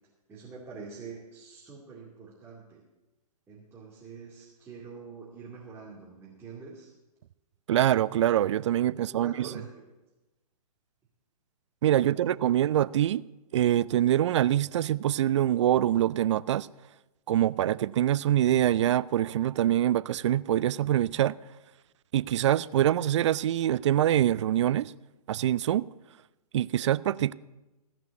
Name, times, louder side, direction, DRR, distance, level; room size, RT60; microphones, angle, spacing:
voice 1, 0.3-2.8 3.5-6.9 8.8-9.8 11.8-12.4, right 5 dB, 10° right, 2.4 m, -46 dB
voice 2, 7.7-9.5 11.8-13.2 13.5-16.7 17.3-21.4 22.1-24.9 25.3-25.9 26.5-27.3, right 12 dB, 50° right, 0.4 m, -24 dB
16.0 x 6.0 x 8.3 m
figure-of-eight pair, 125°, 20 cm